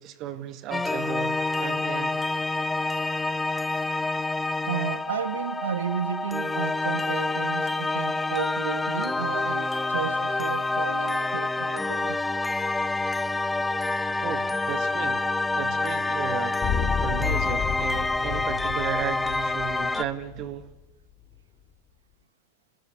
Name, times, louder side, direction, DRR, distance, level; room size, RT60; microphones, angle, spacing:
voice 1, 0.0-2.2 14.2-15.2 15.6-16.6 17.0-20.7, right 10 dB, 35° right, 2.0 m, -35 dB
sound 1, 0.7-20.0, left 2 dB, 10° left, 0.8 m, -27 dB
voice 2, 4.7-12.2, right 8 dB, 65° right, 1.9 m, -33 dB
sound 2, 16.6-20.6, left 7 dB, 30° left, 4.5 m, -31 dB
28.0 x 19.0 x 9.6 m
figure-of-eight pair, 90°, 0 cm